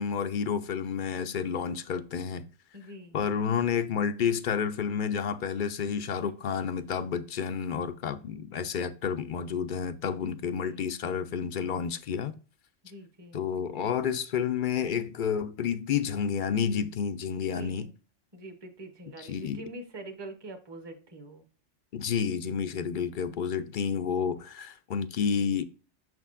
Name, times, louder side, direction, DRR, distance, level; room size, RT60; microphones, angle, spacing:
voice 1, 0.0-2.5 3.1-12.3 13.3-17.9 19.2-19.7 21.9-25.6, left 7 dB, 60° left, 0.5 m, -30 dB
voice 2, 2.7-3.2 10.6-10.8 12.8-13.4 17.3-17.9 18.3-21.4, right 1 dB, 25° right, 0.9 m, -44 dB
6.5 x 6.1 x 2.5 m
omnidirectional pair, 1.3 m